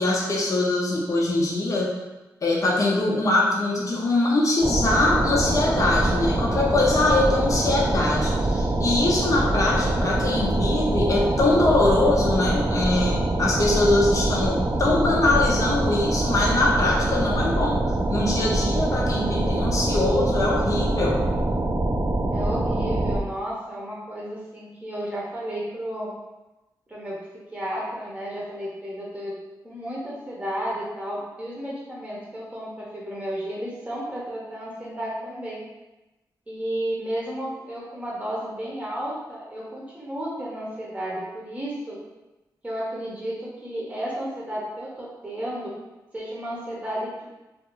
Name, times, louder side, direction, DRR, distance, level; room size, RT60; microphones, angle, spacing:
voice 1, 0.0-1.9 2.4-21.2, left 2 dB, 45° left, -3 dB, 0.5 m, -23 dB
sound 1, 4.6-23.2, right 2 dB, 35° right, 0.4 m, -24 dB
voice 2, 22.3-26.1 26.9-27.1 27.5-29.3 29.6-35.6 36.5-42.0 42.6-45.7 46.1-47.2, equal, 15° right, -5 dB, 0.8 m, -32 dB
2.5 x 2.3 x 2.9 m, 1.1 s
cardioid pair, 70°, 8 cm